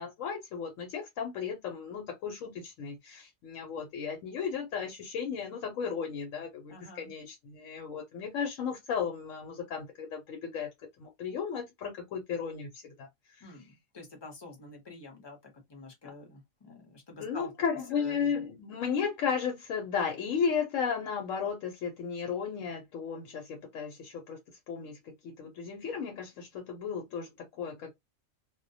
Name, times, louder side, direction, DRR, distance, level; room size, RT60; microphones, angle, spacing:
voice 1, 0.0-10.7 11.0-13.1 13.3-13.5 17.2-24.4 24.7-25.0 25.2-27.9, left 6 dB, 75° left, 1.0 m, -34 dB
voice 2, 6.7-7.1 13.4-15.4 15.7-17.5 17.9-18.4, left 3 dB, 30° left, 0.5 m, -47 dB
2.2 x 2.1 x 2.6 m
omnidirectional pair, 1.4 m